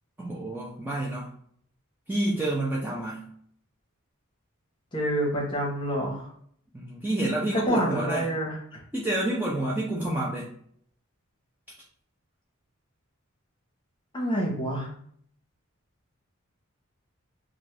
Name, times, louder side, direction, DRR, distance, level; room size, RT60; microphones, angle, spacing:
voice 1, 0.2-1.3 2.1-3.3 6.7-8.3 8.9-10.5, right 1 dB, 10° right, -5 dB, 0.4 m, -28 dB
voice 2, 4.9-6.3 7.5-8.8 14.1-14.9, equal, 20° left, -2 dB, 0.8 m, -28 dB
2.5 x 2.4 x 3.1 m, 0.63 s
head